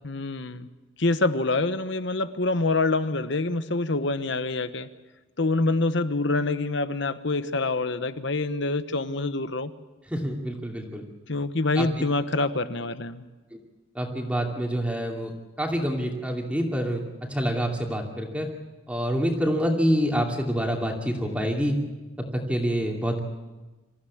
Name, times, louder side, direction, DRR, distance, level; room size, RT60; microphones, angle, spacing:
voice 1, 0.0-0.7 1.0-4.9 5.4-9.7 11.3-13.2, left 3 dB, 55° left, 11 dB, 1.1 m, -26 dB
voice 2, 10.1-11.0 11.8-11.9 13.5-13.6 13.9-15.3 15.6-17.0 17.3-18.5 18.9-21.8 22.2-23.2, equal, 5° right, 0 dB, 2.6 m, -26 dB
26.0 x 15.0 x 8.5 m, 1.2 s
head